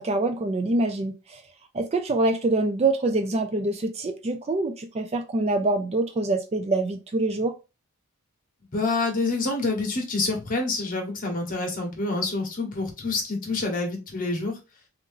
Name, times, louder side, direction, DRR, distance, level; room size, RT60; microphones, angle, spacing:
voice 1, 0.0-1.4 1.7-7.5, right 2 dB, 30° right, 0.4 m, -25 dB
voice 2, 8.7-14.6, left 3 dB, 40° left, 1.3 m, -27 dB
3.5 x 3.0 x 3.7 m
head